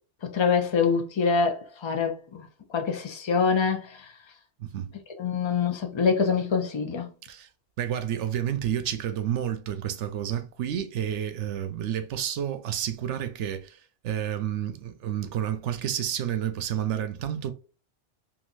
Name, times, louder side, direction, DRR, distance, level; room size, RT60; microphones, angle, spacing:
voice 1, 0.2-4.1 5.2-7.1, left 5 dB, 35° left, 0.5 m, -25 dB
voice 2, 4.6-4.9 7.3-7.5 7.8-17.5, right 10 dB, 80° right, 0.9 m, -30 dB
3.7 x 2.7 x 2.5 m
omnidirectional pair, 1.2 m